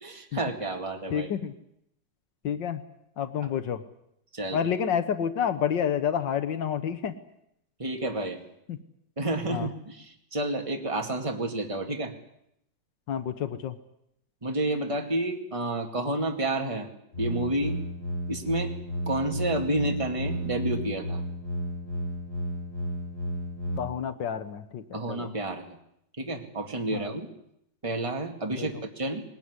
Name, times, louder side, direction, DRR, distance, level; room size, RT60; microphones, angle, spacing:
voice 1, 0.0-1.3 3.4-3.5 4.3-4.6 7.8-8.4 9.2-12.1 14.4-16.9 17.2-17.8 18.3-18.7 19.1-21.2 24.9-25.8 26.2-27.3 27.8-29.2, right 2 dB, 20° right, 4 dB, 2.3 m, -30 dB
voice 2, 1.1-1.5 2.4-2.8 3.2-3.8 4.5-7.1 8.7-8.8 9.5-9.7 13.1-13.8 23.8-25.3 26.9-27.1 28.6-28.7, left 8 dB, 85° left, 9 dB, 1.9 m, -29 dB
sound 1, 17.1-23.8, equal, 35° left, 4.5 m, -33 dB
20.0 x 19.5 x 9.8 m, 0.77 s
omnidirectional pair, 1.9 m